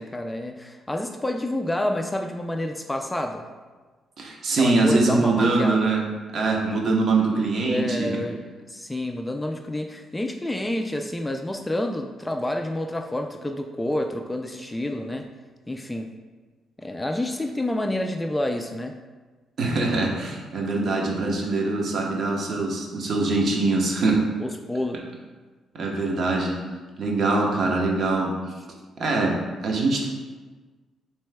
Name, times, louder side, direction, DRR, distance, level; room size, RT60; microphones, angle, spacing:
voice 1, 0.0-3.4 4.6-5.8 7.6-8.4 8.7-15.3 15.7-16.1 16.8-19.0 24.4-25.0, left 1 dB, 15° left, 5 dB, 0.3 m, -29 dB
voice 2, 4.2-6.0 6.3-8.1 19.6-24.2 25.7-26.6 27.0-28.3 29.0-30.1, right 3 dB, 55° right, -1 dB, 0.9 m, -23 dB
7.3 x 3.0 x 2.2 m, 1.3 s
cardioid pair, 90°, 0 cm